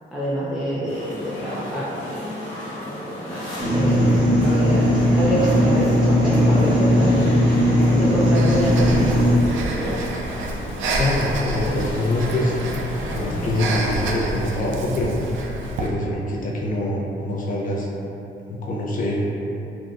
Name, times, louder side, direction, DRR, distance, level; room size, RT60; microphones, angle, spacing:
voice 1, 0.1-2.2 3.3-7.3 8.0-10.0, right 1 dB, ahead, -9 dB, 0.5 m, -27 dB
sound 1, 0.9-13.6, left 1 dB, 80° left, 0.9 m, -34 dB
sound 2, 3.6-9.3, equal, 25° right, 0.9 m, -18 dB
Breathing, 8.3-15.9, right 2 dB, 75° right, 0.4 m, -28 dB
voice 2, 11.0-12.5 13.1-15.1 15.8-17.9 18.5-19.2, left 1 dB, 45° left, -4 dB, 0.6 m, -24 dB
3.4 x 2.6 x 2.4 m, 2.8 s
cardioid pair, 90°, 20 cm